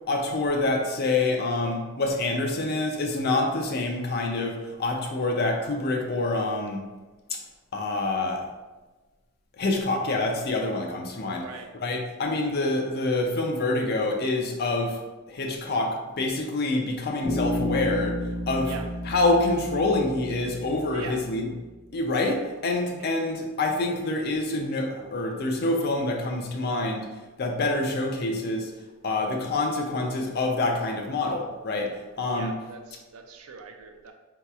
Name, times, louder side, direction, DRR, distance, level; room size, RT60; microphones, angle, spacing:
voice 1, 0.1-6.8 7.3-7.4 7.7-8.5 9.6-11.4 11.8-15.0 15.3-18.7 19.1-21.5 21.9-27.1 27.4-28.7 29.0-32.5, left 2 dB, 45° left, 3 dB, 0.4 m, -26 dB
voice 2, 11.3-11.7 18.6-18.9 20.9-21.2 22.9-23.1 32.3-34.1, right 4 dB, 70° right, 4 dB, 0.4 m, -42 dB
Bass guitar, 17.2-21.3, left 1 dB, 20° right, 1.2 m, -32 dB
3.9 x 2.8 x 2.3 m, 1.2 s
head